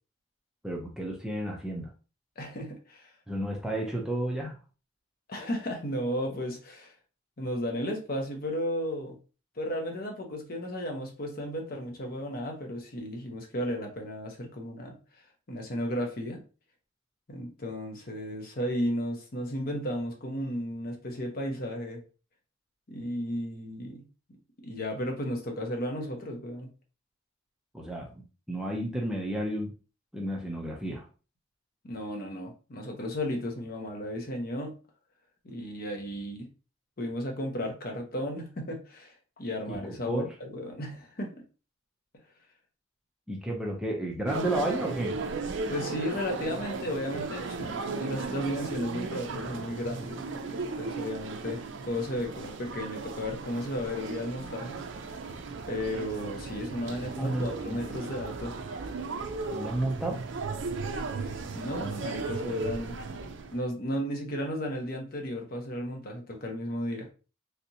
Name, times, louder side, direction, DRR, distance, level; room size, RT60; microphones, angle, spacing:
voice 1, 0.6-1.9 3.3-4.6 27.7-29.7 30.1-31.0 39.7-40.3 43.3-45.2 57.2-57.8 59.5-60.2, right 1 dB, 5° right, -1 dB, 0.5 m, -32 dB
voice 2, 2.4-3.1 5.3-6.9 7.4-9.2 9.6-15.0 15.5-16.4 17.3-22.0 22.9-24.0 24.6-26.7 31.8-34.8 35.4-36.5 37.0-41.3 45.7-54.8 55.7-58.5 61.2-67.1, equal, 45° left, 3 dB, 0.7 m, -34 dB
sound 1, 44.3-63.6, right 4 dB, 60° right, 0.4 m, -36 dB
3.3 x 2.8 x 2.7 m, 0.34 s
head